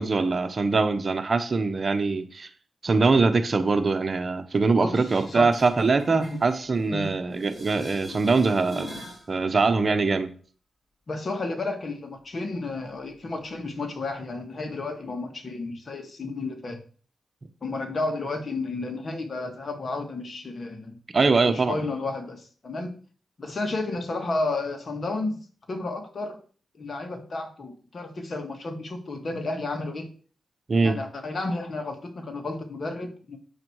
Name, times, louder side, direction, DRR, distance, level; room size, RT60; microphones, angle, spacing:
voice 1, 0.0-2.5 2.8-8.9 9.3-10.3 21.1-21.8 30.7-31.0, right 4 dB, 45° right, 1.1 m, -23 dB
voice 2, 4.8-5.5 6.1-6.4 6.9-7.1 11.1-16.8 17.6-21.0 21.5-22.9 23.4-25.4 25.7-26.4 26.8-30.1 30.8-33.4, left 2 dB, 50° left, 2.2 m, -32 dB
sound 1, 5.0-7.1 7.4-9.3 15.0-15.1, equal, 5° left, 5.9 m, -42 dB
8.8 x 7.2 x 4.8 m
cardioid pair, 70°, 0 cm